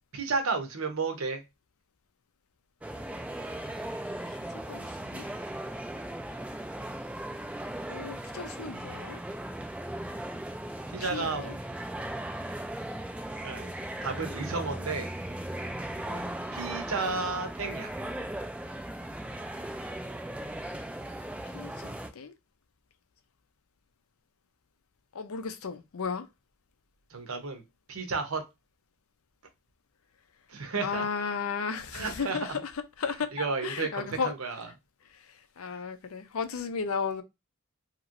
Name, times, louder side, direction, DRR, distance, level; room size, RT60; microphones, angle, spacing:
voice 1, 0.1-1.4 10.9-11.5 13.4-13.7 14.0-15.1 16.5-17.9 27.1-27.6 27.9-28.4 30.5-31.1 31.9-32.6 33.3-34.7, right 4 dB, 80° right, 0.8 m, -32 dB
sound 1, 2.8-22.1, right 1 dB, 5° right, 0.3 m, -37 dB
voice 2, 4.7-5.3 7.9-9.2 11.0-11.5 16.1-16.4 21.5-22.3 25.1-26.3 30.8-32.7 33.0-34.3 35.6-37.2, left 5 dB, 80° left, 0.5 m, -34 dB
2.9 x 2.9 x 2.5 m
head